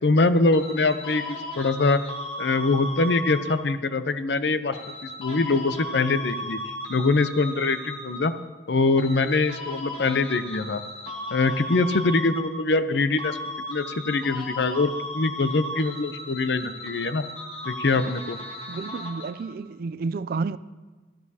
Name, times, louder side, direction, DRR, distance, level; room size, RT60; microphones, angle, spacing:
voice 1, 0.0-2.0 2.4-8.3 8.7-10.8 11.3-13.4 13.7-17.3 17.6-18.4, left 3 dB, 70° left, 0.6 m, -23 dB
sound 1, 0.5-3.9 4.7-8.5 9.0-12.9 13.2-19.5, left 1 dB, 30° left, 2.0 m, -36 dB
voice 2, 18.7-20.6, right 4 dB, 55° right, 0.3 m, -30 dB
16.0 x 13.0 x 2.8 m
head